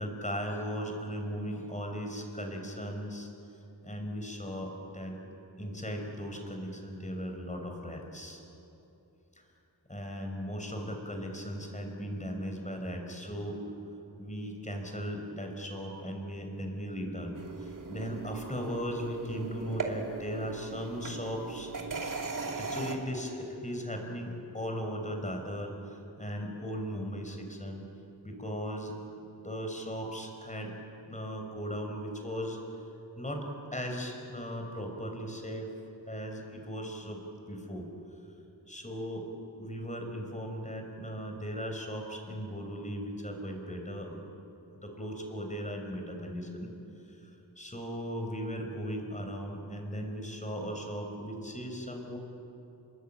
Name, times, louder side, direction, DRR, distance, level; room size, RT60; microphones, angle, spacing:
voice 1, 0.0-3.3 3.8-5.1 5.6-8.4 9.9-13.6 14.2-21.7 22.6-27.8 28.2-30.7 31.1-32.6 33.2-33.5 33.7-35.7 36.1-37.2 37.5-37.9 38.7-39.3 39.6-44.2 44.8-46.7 47.1-47.2 47.6-52.2, equal, 20° left, 3 dB, 5.2 m, -37 dB
sound 1, 17.3-23.0, right 4 dB, 55° right, 3.0 m, -39 dB
30.0 x 22.0 x 9.0 m, 2.9 s
wide cardioid pair, 100°, 39 cm